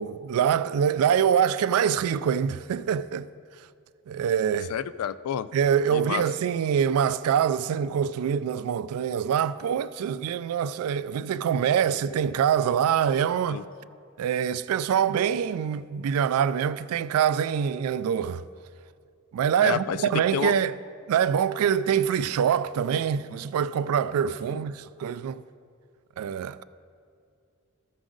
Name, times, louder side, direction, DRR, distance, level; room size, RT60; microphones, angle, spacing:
voice 1, 0.0-3.3 4.1-4.7 5.5-13.6 14.2-18.4 19.3-20.7 21.1-25.4 26.2-26.6, right 8 dB, 85° right, 0.3 m, -25 dB
voice 2, 4.7-5.5 5.9-6.2 13.5-13.6 19.6-20.0 20.3-20.6 24.5-24.6, left 9 dB, 85° left, 0.3 m, -29 dB
14.0 x 6.1 x 3.8 m
head